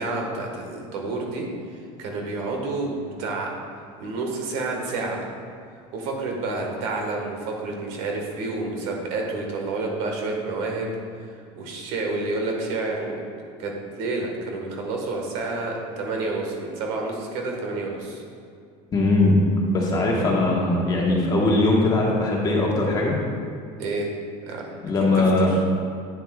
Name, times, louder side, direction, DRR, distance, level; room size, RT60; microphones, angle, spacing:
voice 1, 0.0-1.5 2.0-3.5 4.0-5.2 5.9-11.0 11.5-13.2 13.6-18.2 23.8-24.1 24.5-24.6 25.1-25.6, right 3 dB, 70° right, 0 dB, 1.6 m, -29 dB
voice 2, 18.9-19.4 19.7-23.2 24.8-25.5, left 2 dB, 25° left, -2 dB, 1.3 m, -20 dB
9.2 x 7.3 x 2.4 m, 2.3 s
supercardioid pair, 125°, 15 cm